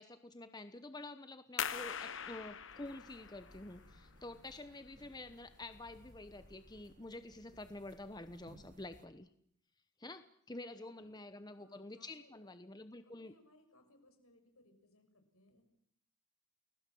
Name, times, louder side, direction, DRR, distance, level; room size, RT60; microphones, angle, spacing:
voice 1, 0.0-9.3 10.0-13.3, left 2 dB, 20° left, 10 dB, 1.0 m, -49 dB
sound 1, 1.6-6.9, left 8 dB, 60° left, 1.1 m, -45 dB
sound 2, 2.7-9.1, right 1 dB, 35° right, 1.9 m, -63 dB
voice 2, 10.6-12.6 13.0-15.7, left 1 dB, 80° left, 5 dB, 6.7 m, -67 dB
30.0 x 20.0 x 7.7 m, 0.67 s
head